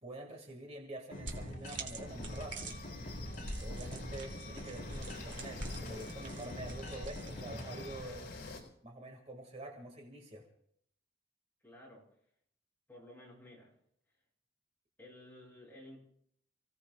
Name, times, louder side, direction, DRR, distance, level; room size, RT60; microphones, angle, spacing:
voice 1, 0.0-2.8 3.4-8.3 8.8-10.5, right 1 dB, 35° right, 1 dB, 2.3 m, -47 dB
sound 1, 1.1-8.0, left 1 dB, 45° left, 5.0 m, -46 dB
sound 2, 1.2-7.4, right 2 dB, 75° right, 2.8 m, -47 dB
sound 3, 2.1-8.6, left 2 dB, 65° left, 4.3 m, -46 dB
voice 2, 11.6-12.1 12.9-13.7 15.0-16.0, left 1 dB, 10° left, -5 dB, 7.2 m, -54 dB
30.0 x 17.0 x 2.5 m, 0.69 s
head